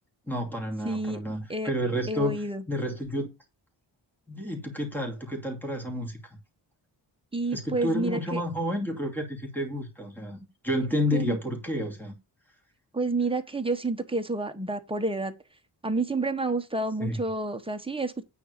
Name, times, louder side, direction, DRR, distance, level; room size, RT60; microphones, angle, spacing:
voice 1, 0.3-3.3 4.3-6.2 7.5-12.1 17.0-17.2, equal, 5° left, 2.5 m, -30 dB
voice 2, 0.8-1.2 1.5-1.7 2.1-2.6 7.3-8.4 11.1-11.4 12.9-15.3 15.8-18.2, right 2 dB, 10° right, 1.0 m, -29 dB
9.2 x 4.1 x 6.5 m
wide cardioid pair, 145°, 46 cm